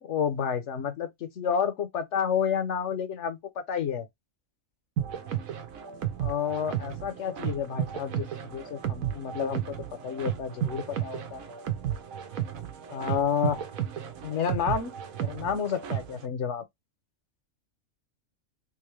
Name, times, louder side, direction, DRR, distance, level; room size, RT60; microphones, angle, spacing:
voice 1, 0.0-3.4 3.7-4.1 6.2-9.6 10.0-11.5 12.9-13.6 14.2-14.9 15.2-16.6, left 7 dB, 60° left, 1.0 m, -30 dB
sound 1, 5.0-16.2, right 10 dB, 75° right, 1.1 m, -33 dB
3.6 x 2.7 x 3.1 m
omnidirectional pair, 1.5 m